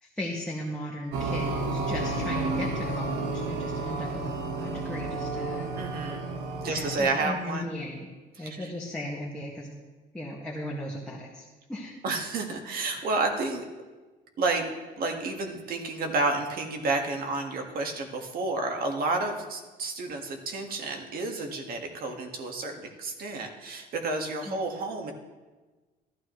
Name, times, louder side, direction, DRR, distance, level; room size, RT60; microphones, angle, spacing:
voice 1, 0.0-5.7 6.0-6.2 6.6-8.1 8.4-9.7 10.1-12.0 24.5-24.6, left 1 dB, 5° left, -5 dB, 1.8 m, -37 dB
sound 1, 1.1-7.0, right 3 dB, 80° right, 1.3 m, -31 dB
voice 2, 5.8-6.2 6.6-7.6 8.4-8.7 12.0-13.6 14.4-14.7 15.0-25.1, right 3 dB, 60° right, 3 dB, 1.8 m, -30 dB
15.0 x 12.0 x 3.2 m, 1.3 s
cardioid pair, 110°, 17 cm